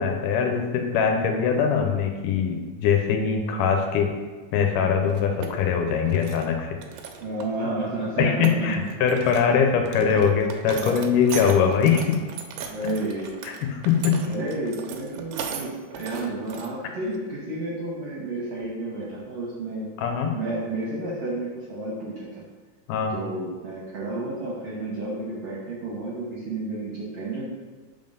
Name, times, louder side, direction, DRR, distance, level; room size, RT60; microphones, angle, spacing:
voice 1, 0.0-4.1 4.5-6.8 8.2-12.2 13.4-14.3 20.0-20.4 22.9-23.1, left 6 dB, 80° left, 3 dB, 2.1 m, -22 dB
sound 1, 5.1-5.5 5.9-6.5 6.8-7.6 7.9-8.0 8.2-9.5 9.9-16.7 17.1-17.2 18.6-18.7 19.0-19.2, right 7 dB, 80° right, 2.2 m, -37 dB
voice 2, 7.2-8.8 9.9-10.3 10.8-11.2 12.6-13.4 14.2-19.9 20.3-22.4 23.1-27.5, right 2 dB, 65° right, -6 dB, 1.6 m, -31 dB
5.1 x 3.8 x 5.3 m, 1.4 s
omnidirectional pair, 3.9 m